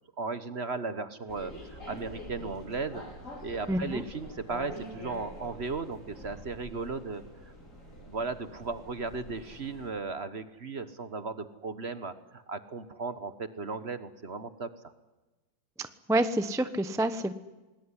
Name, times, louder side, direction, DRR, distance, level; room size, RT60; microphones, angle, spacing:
voice 1, 0.2-3.0 3.4-7.5 8.1-14.7, right 4 dB, 40° right, 12 dB, 1.3 m, -36 dB
sound 1, 1.3-9.9, equal, 40° left, 5.9 m, -45 dB
voice 2, 3.7-4.0 15.8-17.3, right 1 dB, 5° right, 11 dB, 0.5 m, -28 dB
26.5 x 20.5 x 9.9 m, 1.1 s
omnidirectional pair, 2.1 m